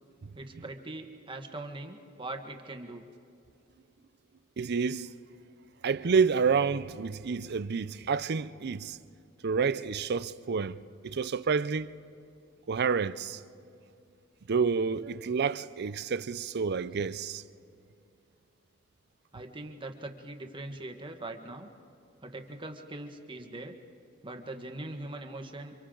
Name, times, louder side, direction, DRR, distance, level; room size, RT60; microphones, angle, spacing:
voice 1, 0.3-3.0 19.3-21.7 22.2-23.8 24.2-25.7, right 2 dB, 25° right, 1.5 m, -41 dB
voice 2, 4.6-5.1 5.8-9.0 9.4-10.8 11.0-11.9 12.7-13.4 14.5-17.4, right 5 dB, 55° right, 0.5 m, -29 dB
29.5 x 25.0 x 3.9 m
head